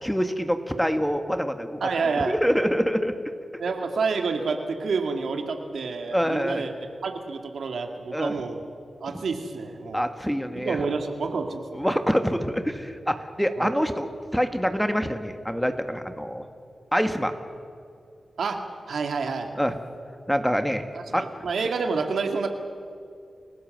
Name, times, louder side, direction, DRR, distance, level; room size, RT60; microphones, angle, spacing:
voice 1, 0.0-1.9 2.3-3.1 6.1-6.6 8.1-8.3 9.9-10.8 11.7-16.4 16.9-17.3 19.6-19.7 20.3-20.8 21.1-21.3, equal, ahead, 7 dB, 2.0 m, -25 dB
voice 2, 1.8-2.4 3.6-6.7 7.0-8.7 9.0-10.0 10.5-11.8 13.6-13.8 18.4-18.6 18.9-19.5 20.9-22.5, right 4 dB, 85° right, 5 dB, 2.1 m, -28 dB
29.5 x 16.5 x 7.8 m, 2.4 s
cardioid pair, 50°, 0 cm